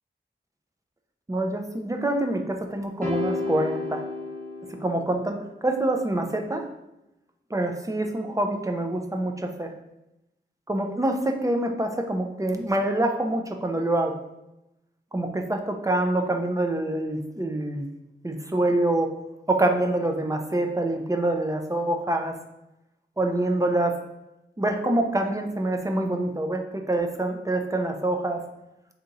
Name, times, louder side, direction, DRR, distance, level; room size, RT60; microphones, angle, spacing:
voice 1, 1.3-4.0 4.8-6.6 7.5-9.7 10.7-14.1 15.1-17.9 18.2-19.1 19.5-22.4 23.2-24.0 24.6-28.4, right 1 dB, 15° right, 4 dB, 0.5 m, -26 dB
sound 1, 3.0-5.4, left 3 dB, 45° right, 1.1 m, -31 dB
3.8 x 2.8 x 3.9 m, 0.91 s
wide cardioid pair, 70°, 20 cm